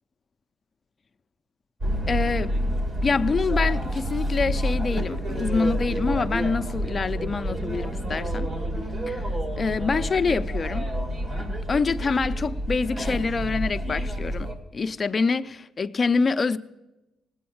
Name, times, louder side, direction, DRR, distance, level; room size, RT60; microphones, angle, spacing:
sound 1, 1.8-14.5, equal, 55° right, 2.5 m, -28 dB
voice 1, 2.1-2.6 3.0-8.5 9.1-10.9 11.4-14.5 14.7-16.6, left 4 dB, 35° left, 0.6 m, -26 dB
19.0 x 8.6 x 7.1 m
cardioid pair, 90°, 0 cm